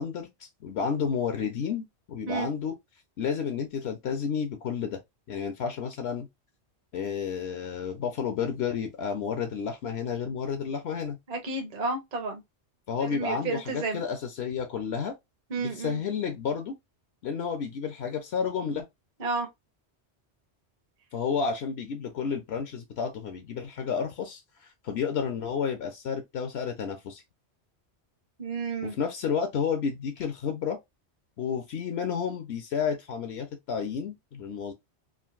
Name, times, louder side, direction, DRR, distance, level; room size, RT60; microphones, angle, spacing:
voice 1, 0.0-2.7 3.2-5.0 5.3-6.3 6.9-11.2 12.9-15.1 15.6-16.8 17.2-18.8 21.1-27.2 28.8-30.8 31.4-34.7, left 6 dB, 70° left, 0.9 m, -31 dB
voice 2, 11.3-12.4 13.0-14.0 15.5-16.0 19.2-19.5 28.4-28.9, right 4 dB, 45° right, 0.8 m, -31 dB
3.7 x 2.5 x 2.4 m
omnidirectional pair, 1.1 m